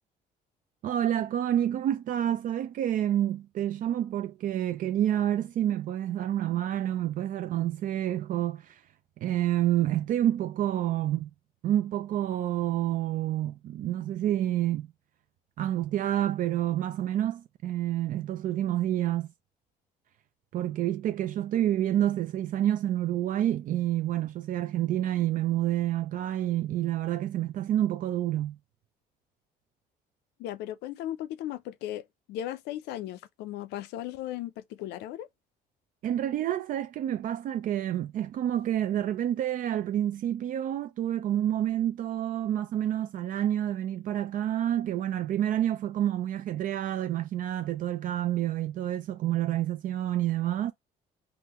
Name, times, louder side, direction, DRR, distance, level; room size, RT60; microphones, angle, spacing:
voice 1, 0.8-8.8 9.2-11.3 11.6-14.9 15.6-19.3 20.5-28.6 36.0-50.7, right 12 dB, 55° right, 0.4 m, -28 dB
voice 2, 30.4-32.0 32.3-35.3, left 12 dB, 85° left, 0.5 m, -36 dB
3.7 x 2.1 x 2.8 m
cardioid pair, 110°, 17 cm